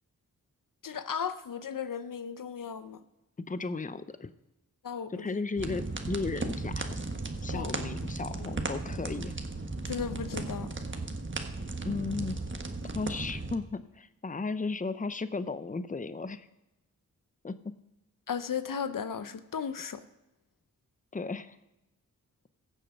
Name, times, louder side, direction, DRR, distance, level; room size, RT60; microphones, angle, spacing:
voice 1, 0.8-3.0 4.8-5.4 7.5-7.9 8.4-8.5 9.9-10.8 18.3-20.0, left 7 dB, 65° left, 12 dB, 0.7 m, -36 dB
voice 2, 3.5-4.3 5.1-6.9 7.4-9.3 11.8-12.4 12.9-16.5 17.4-17.6 21.1-21.6, left 3 dB, 25° left, 13 dB, 0.7 m, -35 dB
sound 1, 5.6-13.5, right 3 dB, 35° right, 1.4 m, -36 dB
15.5 x 6.9 x 5.3 m, 0.95 s
cardioid pair, 40°, 35 cm